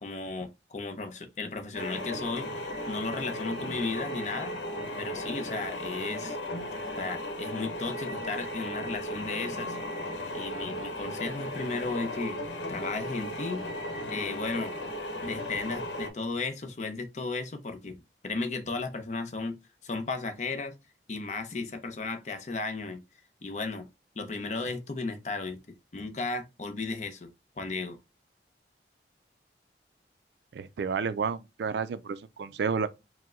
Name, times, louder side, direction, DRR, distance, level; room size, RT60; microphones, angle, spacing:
voice 1, 0.0-2.5 2.9-4.6 5.0-6.4 7.0-9.8 10.3-12.4 12.7-13.6 14.1-14.8 15.2-20.8 21.1-23.0 23.4-23.9 24.2-28.0, left 3 dB, 40° left, 0.6 m, -35 dB
sound 1, 1.7-16.1, left 1 dB, 75° left, 1.0 m, -36 dB
voice 2, 30.5-32.9, right 5 dB, 65° right, 0.3 m, -31 dB
4.6 x 2.1 x 3.6 m
head